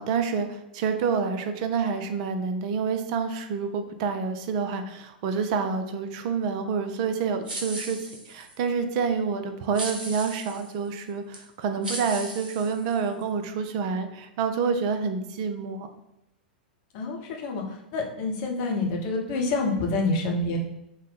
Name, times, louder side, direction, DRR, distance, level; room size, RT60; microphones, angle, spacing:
voice 1, 0.0-15.9, right 5 dB, 45° right, 8 dB, 0.4 m, -28 dB
sound 1, 7.5-8.6 9.7-10.7 11.3-11.4 11.8-13.2, right 1 dB, 70° right, 0.9 m, -37 dB
voice 2, 16.9-17.6 17.9-20.6, left 3 dB, 45° left, 0 dB, 0.8 m, -27 dB
3.7 x 2.1 x 4.0 m, 0.83 s
figure-of-eight pair, 95°, 5 cm